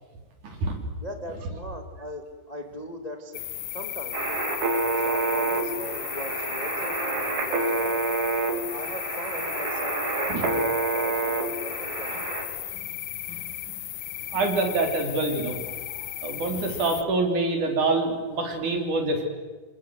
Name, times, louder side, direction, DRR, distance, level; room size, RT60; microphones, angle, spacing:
voice 1, 0.4-0.8 10.3-10.4 13.3-13.4 14.3-15.6 16.2-19.2, right 3 dB, 50° right, 4 dB, 5.2 m, -26 dB
voice 2, 1.0-3.4 3.7-4.4 5.0-8.0 8.5-12.4, equal, 20° left, 5 dB, 1.1 m, -38 dB
sound 1, 3.3-17.0, left 13 dB, 70° left, 2.2 m, -35 dB
sound 2, 4.1-12.4, right 3 dB, 75° right, 5.7 m, -28 dB
27.5 x 27.0 x 7.9 m, 1.3 s
omnidirectional pair, 4.5 m